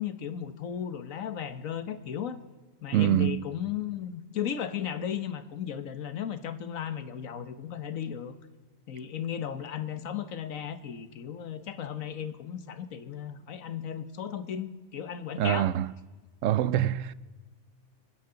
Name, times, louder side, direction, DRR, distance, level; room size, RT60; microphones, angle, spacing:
voice 1, 0.0-2.4 2.8-8.3 8.9-15.7, left 9 dB, 80° left, 1.4 m, -35 dB
voice 2, 2.9-3.4 15.4-15.9 16.4-17.1, right 12 dB, 75° right, 1.0 m, -25 dB
27.0 x 10.0 x 3.9 m
omnidirectional pair, 1.4 m